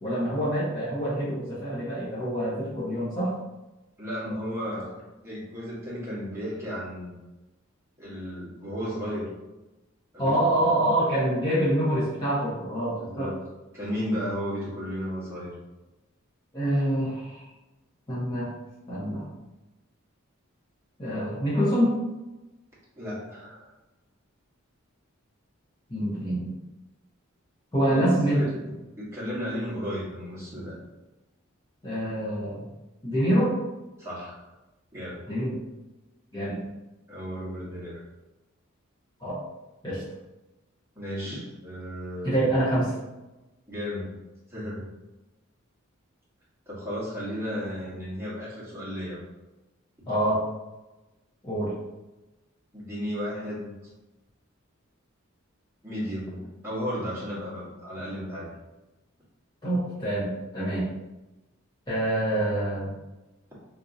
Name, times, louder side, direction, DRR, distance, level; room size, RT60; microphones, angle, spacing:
voice 1, 0.0-3.3 10.2-13.3 16.5-17.4 18.1-18.5 18.9-19.3 21.0-21.9 25.9-26.6 27.7-28.4 31.8-32.6 33.0-33.5 35.3-35.6 36.3-36.6 39.2-39.4 39.8-40.0 42.2-43.0 50.1-50.4 51.4-51.7 59.6-60.3 60.5-60.8 61.9-62.9, right 1 dB, 20° left, -11 dB, 0.9 m, -26 dB
voice 2, 4.0-4.9 5.2-7.2 8.0-9.3 10.1-11.0 13.0-13.4 13.7-15.5 23.0-23.7 27.9-28.6 29.0-30.8 34.0-34.4 34.9-35.2 37.1-38.0 40.9-42.5 43.7-44.1 44.5-44.8 46.7-49.2 52.7-53.8 55.8-58.5, equal, 10° right, -8 dB, 1.1 m, -34 dB
3.6 x 2.7 x 2.6 m, 1.0 s
head